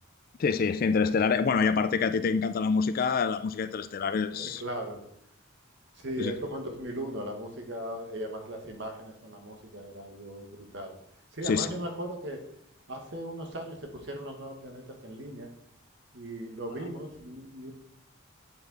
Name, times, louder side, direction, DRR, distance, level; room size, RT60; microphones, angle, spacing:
voice 1, 0.4-4.6 6.2-6.3 11.4-11.7, left 5 dB, 45° left, 11 dB, 0.3 m, -26 dB
voice 2, 4.3-5.0 6.0-10.9 11.3-12.4 12.9-15.5 16.1-17.7, right 1 dB, 55° right, 3 dB, 1.3 m, -38 dB
8.7 x 4.7 x 4.0 m, 0.73 s
head